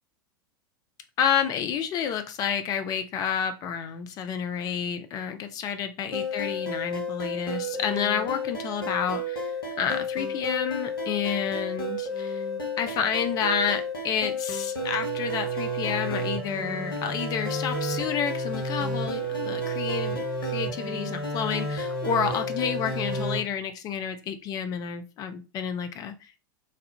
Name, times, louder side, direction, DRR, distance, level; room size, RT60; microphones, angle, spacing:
voice 1, 1.2-12.4 12.8-26.4, left 8 dB, 35° left, 8 dB, 0.5 m, -30 dB
sound 1, 6.1-23.4, equal, 75° left, 1.0 m, -31 dB
3.2 x 2.3 x 2.8 m, 0.30 s
figure-of-eight pair, 85°, 12 cm